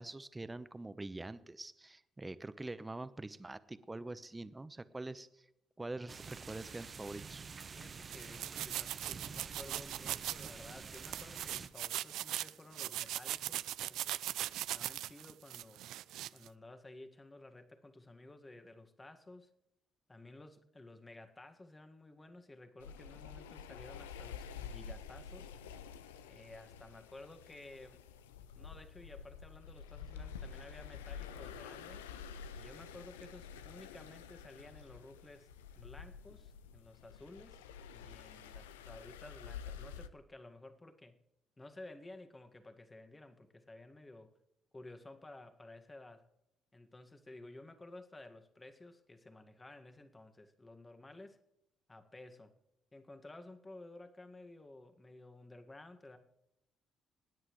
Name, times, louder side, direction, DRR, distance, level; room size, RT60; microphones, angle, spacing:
voice 1, 0.0-5.4 5.8-7.5, right 2 dB, 20° right, 13 dB, 1.0 m, -45 dB
sound 1, 6.1-11.7, right 5 dB, 45° right, 0.9 m, -48 dB
voice 2, 7.7-15.8 16.3-19.5 20.1-25.5 26.3-28.0 28.6-32.0 32.5-37.7 37.9-41.2 41.6-44.3 44.7-46.3 46.7-51.4 51.9-52.5 52.9-56.2, left 2 dB, 25° left, 7 dB, 1.8 m, -54 dB
sound 2, 8.1-16.5, right 13 dB, 70° right, 0.4 m, -40 dB
sound 3, 22.8-40.1, left 7 dB, 90° left, 0.5 m, -49 dB
26.0 x 9.8 x 3.2 m, 0.84 s
hypercardioid pair, 50°, 0 cm